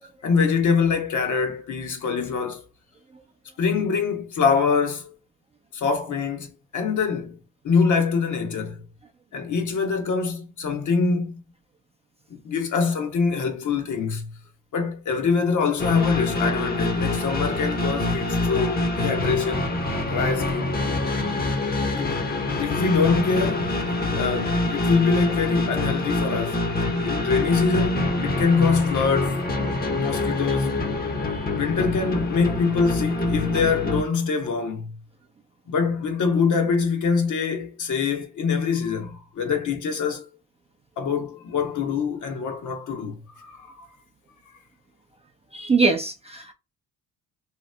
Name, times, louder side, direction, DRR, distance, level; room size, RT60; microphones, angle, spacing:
voice 1, 0.2-2.6 3.6-5.1 5.7-7.4 7.6-8.8 9.3-11.4 12.4-14.3 14.7-19.6 20.1-20.8 21.9-22.2 22.6-23.7 24.1-29.4 30.0-30.8 31.5-34.9 35.7-40.2 41.0-43.9, left 5 dB, 50° left, 1.0 m, -24 dB
sound 1, 15.8-34.0, left 2 dB, 25° left, 0.8 m, -25 dB
voice 2, 45.5-46.5, right 4 dB, 15° right, 0.5 m, -23 dB
2.9 x 2.1 x 3.2 m
supercardioid pair, 70°, 38 cm